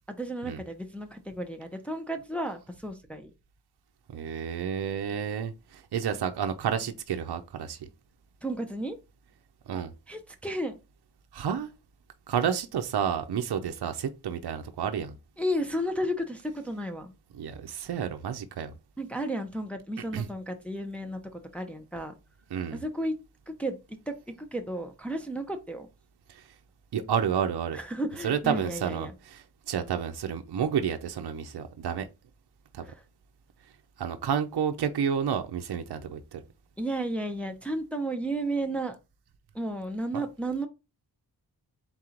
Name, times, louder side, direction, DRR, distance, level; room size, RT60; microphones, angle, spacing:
voice 1, 0.1-3.3 8.4-9.0 10.1-10.7 15.4-17.1 19.0-22.1 22.7-23.1 23.5-25.9 27.7-29.1 32.8-33.0 36.8-39.0 39.5-40.7, right 1 dB, 5° left, 0.6 m, -33 dB
voice 2, 4.1-7.9 9.7-9.9 11.3-11.7 12.3-15.1 17.4-18.7 20.1-20.3 22.5-22.8 26.3-26.5 26.9-27.8 28.2-32.1 32.7-32.8 34.0-36.4 40.1-40.2, right 8 dB, 70° right, 0.6 m, -30 dB
3.9 x 3.0 x 3.7 m
wide cardioid pair, 70°, 41 cm